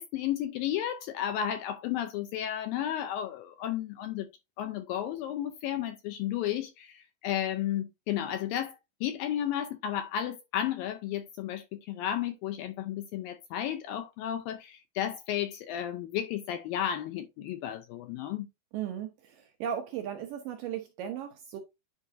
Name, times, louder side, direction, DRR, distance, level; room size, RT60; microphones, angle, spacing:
voice 1, 0.0-4.3 4.6-18.5, left 11 dB, 80° left, 2.2 m, -33 dB
voice 2, 18.7-21.6, right 9 dB, 75° right, 2.0 m, -36 dB
10.0 x 4.9 x 2.6 m
omnidirectional pair, 4.7 m